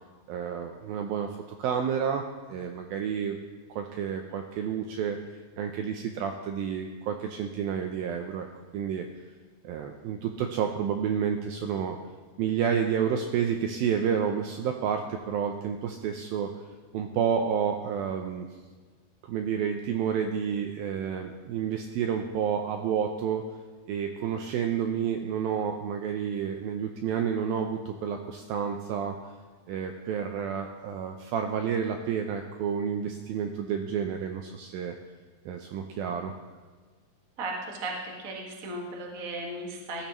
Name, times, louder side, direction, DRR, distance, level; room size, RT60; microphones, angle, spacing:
voice 1, 0.3-1.3 1.6-2.2 2.5-3.4 3.7-5.2 5.6-8.5 8.7-9.1 9.6-12.0 12.4-16.5 16.9-18.5 19.2-23.5 23.9-29.2 29.7-35.0 35.5-36.3, right 7 dB, 80° right, 4 dB, 2.2 m, -30 dB
voice 2, 37.4-40.1, right 2 dB, 50° right, -1 dB, 1.0 m, -36 dB
19.5 x 12.5 x 3.1 m, 1.4 s
omnidirectional pair, 4.9 m